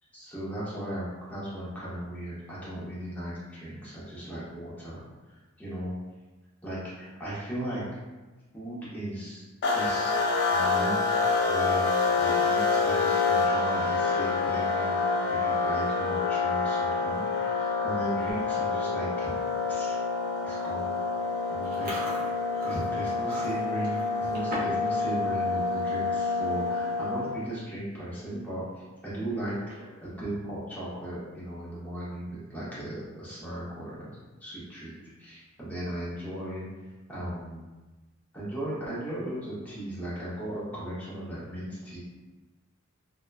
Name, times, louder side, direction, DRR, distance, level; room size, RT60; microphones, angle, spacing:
voice 1, 0.1-5.0 5.6-5.9 6.6-7.8 8.5-9.5 9.7-10.2 10.5-11.0 11.5-15.0 15.3-19.3 19.7-20.0 20.4-20.9 21.5-22.0 22.6-28.6 29.0-34.1 34.4-36.7 37.1-37.6 38.3-42.0, right 1 dB, 5° left, -9 dB, 0.7 m, -36 dB
sound 1, 9.6-27.5, left 4 dB, 50° left, 0.3 m, -27 dB
Chewing mastication, 21.6-24.9 25.2-25.5 25.9-26.2 26.9-27.0 27.2-27.6 28.0-28.1 29.5-30.1, right 1 dB, 40° right, 0.6 m, -40 dB
2.8 x 2.2 x 2.3 m, 1.2 s
head